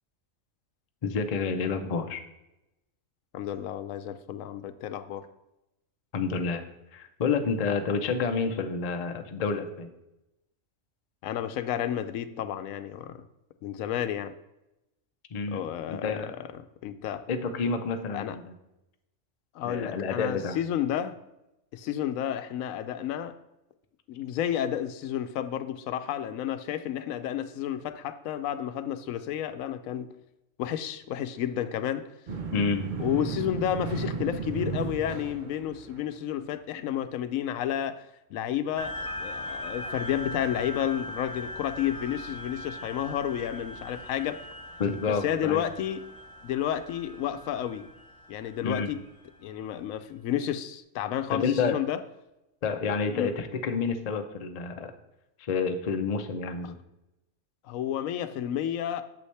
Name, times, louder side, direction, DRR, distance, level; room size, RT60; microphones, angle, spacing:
voice 1, 1.0-2.2 6.1-6.6 6.9-9.9 15.3-15.6 15.9-16.3 17.3-18.5 19.6-20.6 32.5-32.9 44.8-45.6 48.6-48.9 51.3-51.8 52.6-54.9 55.5-56.7, left 5 dB, 45° left, 0.5 m, -29 dB
voice 2, 3.3-5.3 11.2-13.2 13.6-14.3 15.5-16.5 16.8-17.2 18.1-18.4 19.5-21.2 21.7-23.3 24.1-30.1 30.6-32.1 33.0-44.4 45.1-46.1 46.4-47.9 48.3-49.0 49.4-52.0 53.1-53.3 56.6-56.7 57.6-59.0, left 10 dB, 90° left, 1.0 m, -31 dB
sound 1, 32.3-36.2, right 5 dB, 40° right, 0.9 m, -34 dB
sound 2, 38.8-49.7, left 1 dB, 5° left, 1.2 m, -40 dB
8.3 x 6.8 x 3.3 m
omnidirectional pair, 1.4 m